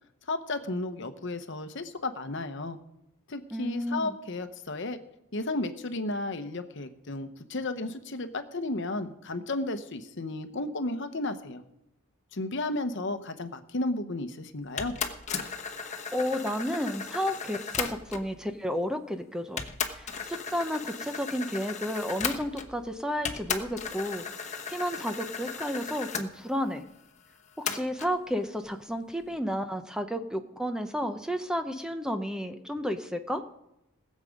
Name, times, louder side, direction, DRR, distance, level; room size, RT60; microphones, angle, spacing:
voice 1, 0.3-2.8 3.3-5.0 5.3-11.6 12.3-14.9, left 2 dB, 55° left, 9 dB, 0.9 m, -33 dB
voice 2, 3.5-4.1 15.7-19.6 19.9-26.8 27.6-33.4, equal, 5° right, 8 dB, 0.6 m, -32 dB
sound 1, 14.8-18.3 19.1-19.2 19.6-22.9 23.2-26.3 27.7-28.1, left 6 dB, 35° left, 1.1 m, -35 dB
19.5 x 7.5 x 5.2 m, 0.85 s
head